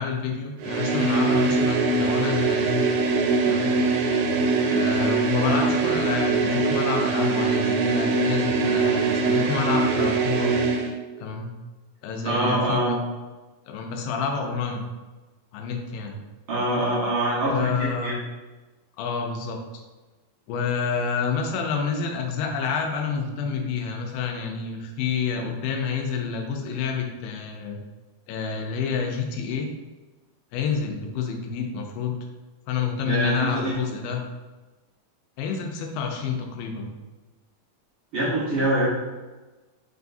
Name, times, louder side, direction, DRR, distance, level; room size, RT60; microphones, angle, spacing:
voice 1, 0.0-2.8 3.4-3.7 4.6-10.5 11.2-11.5 12.0-13.0 13.7-14.8 15.5-16.2 17.5-18.2 19.0-19.6 20.5-27.8 28.3-29.7 30.5-32.2 32.7-34.2 35.4-36.9, left 6 dB, 80° left, 2 dB, 2.3 m, -28 dB
sound 1, 0.6-10.9, right 3 dB, 90° right, 2.4 m, -22 dB
voice 2, 12.2-12.9 16.5-18.1 33.0-33.7 38.1-38.9, right 1 dB, 75° right, -8 dB, 1.2 m, -24 dB
5.4 x 2.3 x 2.6 m, 1.2 s
omnidirectional pair, 4.0 m